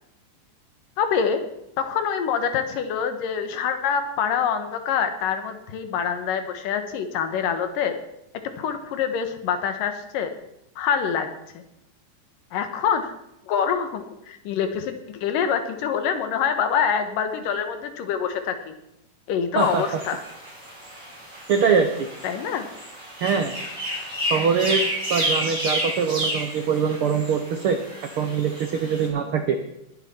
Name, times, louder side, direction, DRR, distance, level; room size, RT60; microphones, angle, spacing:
voice 1, 1.0-1.4 1.8-7.9 8.6-10.3 10.8-11.3 12.5-13.1 13.5-18.7 19.3-20.2 22.2-22.7, left 7 dB, 90° left, 7 dB, 2.9 m, -25 dB
sound 1, 19.6-29.1, equal, 30° right, 6.3 m, -31 dB
voice 2, 21.5-22.1 23.2-23.5 24.3-24.8 25.1-27.8 28.2-29.6, right 6 dB, 80° right, 6 dB, 1.2 m, -23 dB
20.0 x 9.8 x 4.4 m, 0.83 s
omnidirectional pair, 3.8 m